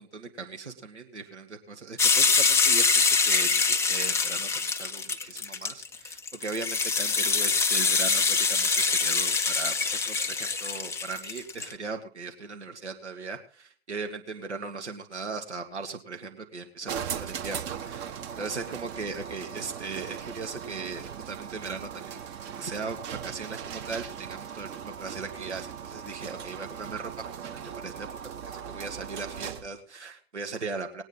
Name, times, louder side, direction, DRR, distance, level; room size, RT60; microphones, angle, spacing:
voice 1, 0.0-16.9 17.2-17.6 17.8-22.2 22.6-23.0 23.2-28.1 28.7-31.0, right 4 dB, 80° right, 3 dB, 1.9 m, -38 dB
sound 1, 2.0-11.7, left 4 dB, 10° left, 0.6 m, -24 dB
sound 2, 16.9-29.8, right 8 dB, 30° right, 1.1 m, -38 dB
20.0 x 9.0 x 4.0 m, 0.37 s
figure-of-eight pair, 100°, 34 cm